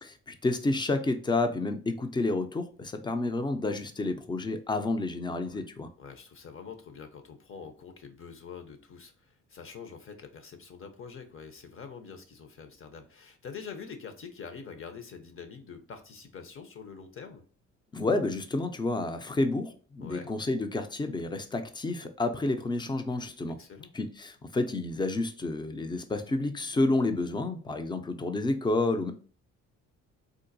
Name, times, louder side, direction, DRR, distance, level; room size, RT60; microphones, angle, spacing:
voice 1, 0.0-5.9 17.9-23.6 23.9-29.1, left 2 dB, 15° left, 0.4 m, -30 dB
voice 2, 6.0-17.4 20.0-20.3 23.6-23.9, left 6 dB, 45° left, 0.7 m, -45 dB
3.8 x 2.6 x 2.5 m
cardioid pair, 90°, 30 cm